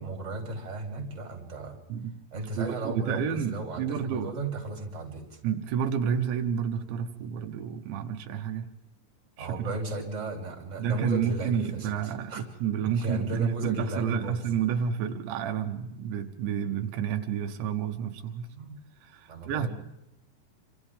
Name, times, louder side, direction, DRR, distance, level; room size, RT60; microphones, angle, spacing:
voice 1, 0.0-1.8 2.3-5.4 9.4-12.4 12.8-14.4 18.5-18.8 19.3-19.7, right 2 dB, 15° right, 2 dB, 3.2 m, -35 dB
voice 2, 2.6-4.3 5.4-8.7 9.4-9.7 10.8-18.5 19.0-19.7, right 7 dB, 85° right, 5 dB, 3.4 m, -30 dB
27.5 x 26.5 x 3.6 m, 0.86 s
omnidirectional pair, 5.1 m